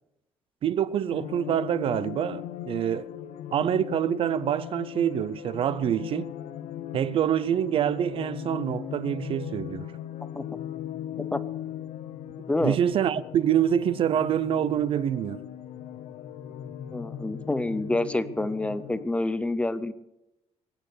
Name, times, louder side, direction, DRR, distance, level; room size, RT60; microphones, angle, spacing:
voice 1, 0.6-3.1 3.5-6.3 6.9-9.9 12.6-15.4, right 9 dB, 50° right, 0.5 m, -26 dB
sound 1, 1.1-19.1, left 10 dB, 75° left, 0.8 m, -38 dB
voice 2, 16.9-19.9, left 2 dB, 10° left, 0.5 m, -27 dB
20.5 x 8.7 x 6.7 m
cardioid pair, 160°, 12 cm